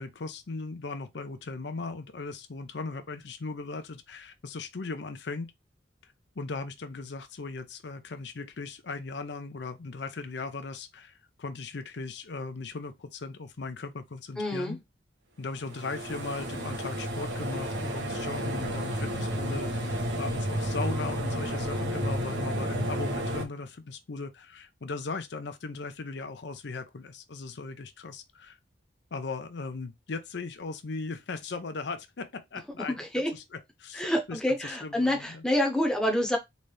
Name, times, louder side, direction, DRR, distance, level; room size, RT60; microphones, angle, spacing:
voice 1, 0.0-5.5 6.0-14.8 15.4-28.6 29.1-33.0 33.3-33.4 33.8-35.4, left 3 dB, 65° left, 0.6 m, -38 dB
voice 2, 14.4-14.8 32.9-33.3 33.9-36.4, left 1 dB, 5° left, 0.9 m, -27 dB
sound 1, 15.6-23.4, equal, 80° right, 1.3 m, -31 dB
4.0 x 3.3 x 3.3 m
head